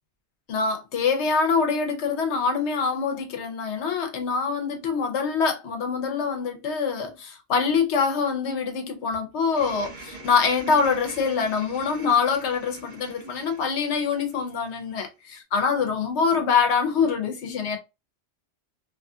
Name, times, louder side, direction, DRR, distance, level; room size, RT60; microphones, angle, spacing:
voice 1, 0.5-15.1 15.5-17.8, left 5 dB, 90° left, 1.1 m, -24 dB
sound 1, 9.6-15.0, right 2 dB, 65° right, 1.0 m, -45 dB
3.0 x 2.4 x 2.5 m
omnidirectional pair, 1.1 m